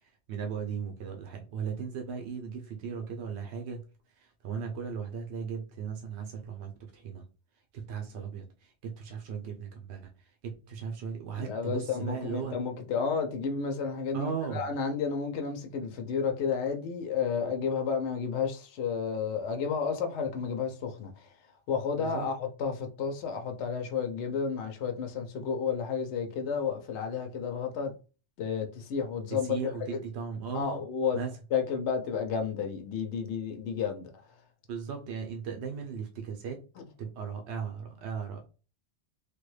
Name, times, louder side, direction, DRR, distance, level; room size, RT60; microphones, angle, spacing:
voice 1, 0.3-3.8 4.2-7.2 7.7-10.0 10.4-12.5 14.1-14.6 22.0-22.3 29.3-30.8 31.1-31.3 34.7-36.6 37.0-38.5, right 6 dB, 85° right, 0.9 m, -37 dB
voice 2, 11.4-21.3 21.7-27.9 28.4-30.0 30.5-31.2 31.5-34.1 36.8-36.9, left 6 dB, 90° left, 0.9 m, -31 dB
3.2 x 2.2 x 3.1 m
omnidirectional pair, 1.1 m